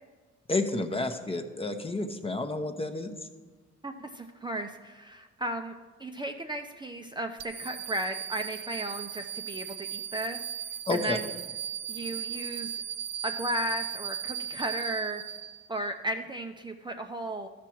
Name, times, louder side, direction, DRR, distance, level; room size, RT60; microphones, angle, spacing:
voice 1, 0.5-3.2 10.9-11.2, left 2 dB, 20° left, 7 dB, 0.8 m, -30 dB
voice 2, 3.8-5.7 6.0-11.3 11.9-12.8 13.2-15.2 15.7-17.5, right 1 dB, 15° right, 4 dB, 0.6 m, -35 dB
sound 1, 7.4-15.9, right 9 dB, 60° right, 0.6 m, -37 dB
13.0 x 5.9 x 4.6 m, 1.3 s
cardioid pair, 90°, 30 cm